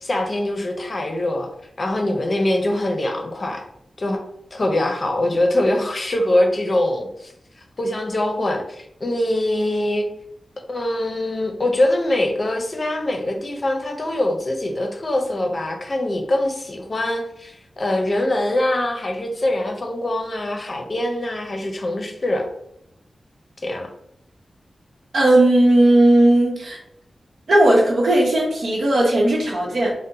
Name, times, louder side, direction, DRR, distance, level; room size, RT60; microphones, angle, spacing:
voice 1, 0.0-1.5 1.8-3.7 4.0-4.2 4.5-7.3 7.8-10.1 10.7-22.5 23.6-23.9, left 1 dB, 45° left, 3 dB, 0.5 m, -23 dB
voice 2, 25.1-26.8 27.5-29.9, right 1 dB, 80° right, -2 dB, 0.8 m, -16 dB
2.7 x 2.1 x 3.7 m, 0.76 s
wide cardioid pair, 80°, 0 cm